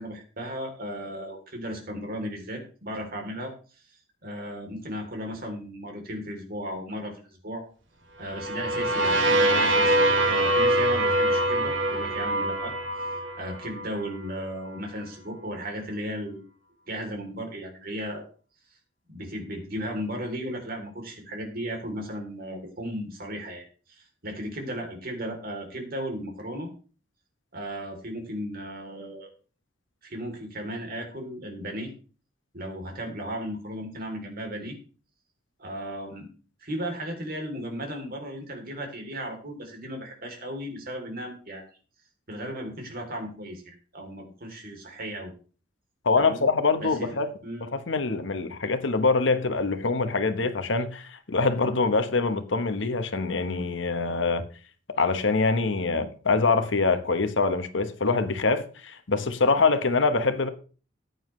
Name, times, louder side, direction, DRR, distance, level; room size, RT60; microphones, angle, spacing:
voice 1, 0.0-3.5 4.2-7.6 8.2-12.7 13.4-16.4 16.9-18.2 19.1-26.7 27.5-29.3 30.0-31.9 32.5-34.7 35.6-36.3 36.6-41.6 42.3-45.3 46.1-46.5 46.8-47.1 47.4-47.7, equal, 50° right, 3.3 m, -35 dB
sound 1, 8.3-14.1, right 1 dB, 75° right, 2.2 m, -24 dB
voice 2, 46.0-47.3 47.6-54.5 55.0-60.5, left 3 dB, 70° left, 1.1 m, -24 dB
14.5 x 9.4 x 3.2 m
head